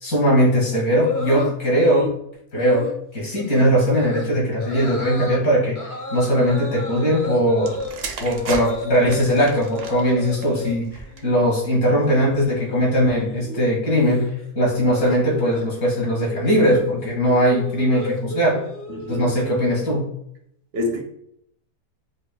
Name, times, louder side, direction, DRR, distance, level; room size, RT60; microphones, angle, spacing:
voice 1, 0.0-2.1 2.5-2.9 3.1-7.8 8.2-18.6 19.1-20.1, equal, 70° left, -2 dB, 2.2 m, -20 dB
sound 1, 1.0-2.1 2.5-2.9 3.4-3.6 4.0-4.3 4.6-5.4 5.7-9.2 9.5-10.8 11.1-11.5 11.8-20.0, equal, 45° left, 0.4 m, -33 dB
sound 2, 7.6-11.4 12.2-12.5, right 5 dB, 65° right, 0.8 m, -35 dB
voice 2, 18.9-19.3 20.7-21.0, left 2 dB, 80° right, 2 dB, 1.3 m, -26 dB
6.4 x 2.2 x 2.3 m, 0.73 s
omnidirectional pair, 1.7 m